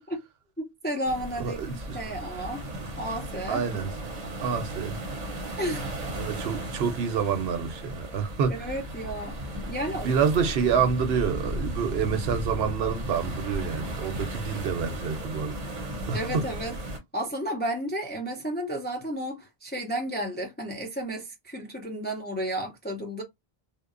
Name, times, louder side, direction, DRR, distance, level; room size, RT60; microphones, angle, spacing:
voice 1, 0.6-2.7 3.0-3.7 5.6-5.9 8.5-9.4 9.7-10.1 16.1-16.7 17.1-23.2, right 1 dB, 15° left, 0.4 m, -32 dB
sound 1, 1.0-17.0, right 1 dB, 45° right, 0.7 m, -35 dB
voice 2, 1.4-2.0 3.5-3.9 4.4-5.0 6.2-8.7 9.9-15.8 16.1-16.5, right 6 dB, 75° right, 0.8 m, -28 dB
2.8 x 2.0 x 2.4 m
omnidirectional pair, 1.0 m